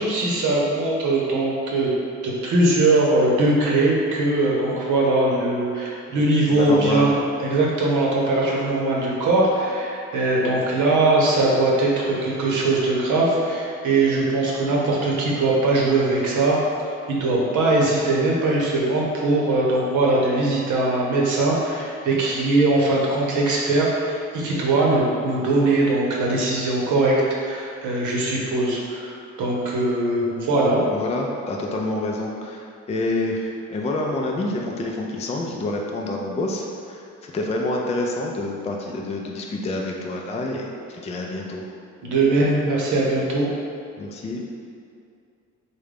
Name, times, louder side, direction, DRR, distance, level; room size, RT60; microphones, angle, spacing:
voice 1, 0.0-1.9 2.2-16.6 17.1-29.1 29.4-30.8 42.0-43.5, right 2 dB, 80° right, -3 dB, 0.8 m, -21 dB
voice 2, 6.1-7.1 30.9-41.6 44.0-44.4, left 2 dB, 20° left, 0 dB, 0.3 m, -28 dB
3.6 x 2.2 x 3.3 m, 2.4 s
cardioid pair, 90°, 30 cm